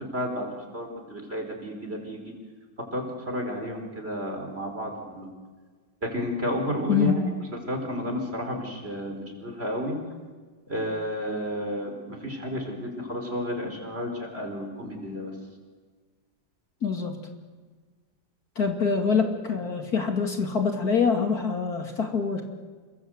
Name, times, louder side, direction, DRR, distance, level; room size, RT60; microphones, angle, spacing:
voice 1, 0.1-2.3 2.9-5.3 6.0-7.3 7.7-10.0 10.7-15.3, equal, 30° right, 3 dB, 5.0 m, -32 dB
voice 2, 16.8-17.1 18.6-22.4, left 5 dB, 55° left, 3 dB, 2.8 m, -25 dB
27.5 x 23.5 x 7.9 m, 1.4 s
omnidirectional pair, 2.0 m